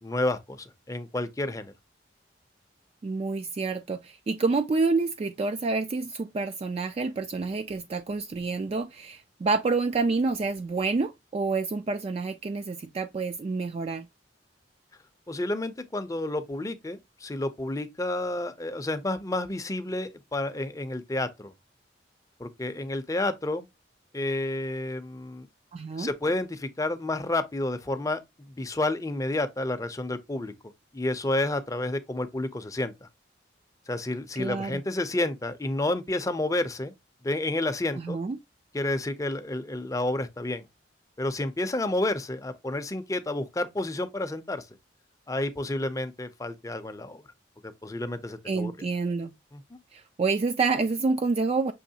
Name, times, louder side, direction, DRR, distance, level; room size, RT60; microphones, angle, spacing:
voice 1, 0.0-1.7 15.3-21.5 22.4-23.7 24.1-25.5 26.0-28.2 28.6-30.5 30.9-33.1 33.9-36.9 37.2-38.2 38.7-40.7 41.2-44.7 45.3-47.2 47.8-48.7 49.5-49.6, left 2 dB, 20° left, 0.5 m, -30 dB
voice 2, 3.0-14.1 25.7-26.1 34.4-34.8 38.0-38.4 48.5-49.3 49.9-51.7, right 4 dB, 35° right, 0.3 m, -28 dB
6.3 x 3.0 x 2.8 m
head